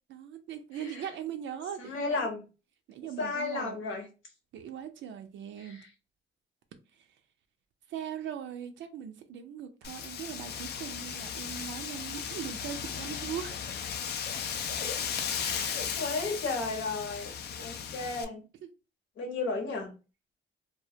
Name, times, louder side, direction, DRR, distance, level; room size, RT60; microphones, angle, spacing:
voice 1, 0.1-2.3 2.9-3.8 4.5-5.8 6.9-7.1 7.9-14.0 15.9-16.0 17.6-17.7 18.6-18.7, right 9 dB, 70° right, 0.4 m, -40 dB
voice 2, 1.8-2.4 3.2-4.0 5.6-5.8 14.1-15.0 15.4-17.3 17.6-18.4 19.2-19.9, left 3 dB, 80° left, 0.9 m, -34 dB
Wind, 9.8-18.2, left 7 dB, 55° left, 0.4 m, -36 dB
2.2 x 2.1 x 2.7 m
cardioid pair, 90°, 20 cm